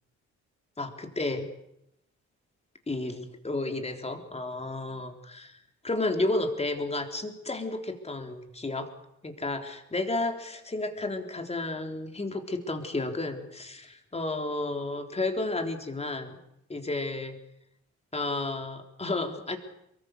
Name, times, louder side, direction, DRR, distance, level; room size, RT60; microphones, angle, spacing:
voice 1, 0.8-1.5 2.9-8.9 9.2-16.4 16.7-17.4 18.1-19.6, left 2 dB, 20° left, 5 dB, 3.7 m, -32 dB
23.5 x 23.0 x 6.7 m, 0.78 s
cardioid pair, 90°, 30 cm